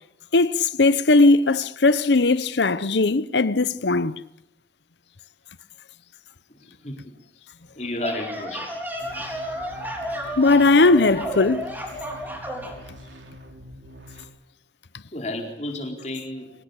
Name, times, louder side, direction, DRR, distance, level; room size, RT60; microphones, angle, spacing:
voice 1, 0.3-4.1 10.4-11.6, left 3 dB, 80° left, 0.9 m, -18 dB
voice 2, 7.8-8.7 11.1-11.3 15.1-16.5, left 1 dB, 40° left, 4.5 m, -32 dB
sound 1, 7.8-12.8, equal, 10° right, 4.4 m, -32 dB
sound 2, 9.0-14.2, equal, 90° right, 3.4 m, -45 dB
24.5 x 19.5 x 8.3 m
head